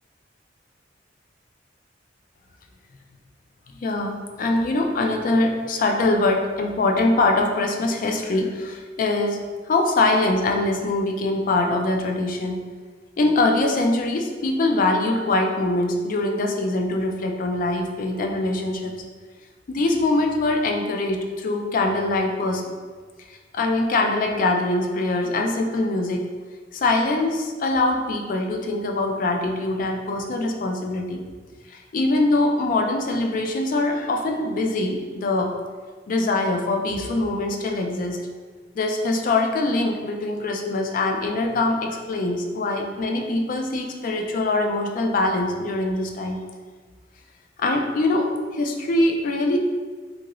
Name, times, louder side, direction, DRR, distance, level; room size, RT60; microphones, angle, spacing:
voice 1, 3.8-9.4 9.7-12.6 13.2-18.9 19.7-22.6 23.3-26.2 26.7-31.2 31.7-35.5 36.1-38.2 38.8-46.4 47.6-49.6, left 2 dB, 45° left, 3 dB, 0.3 m, -23 dB
2.7 x 2.5 x 3.0 m, 1.5 s
head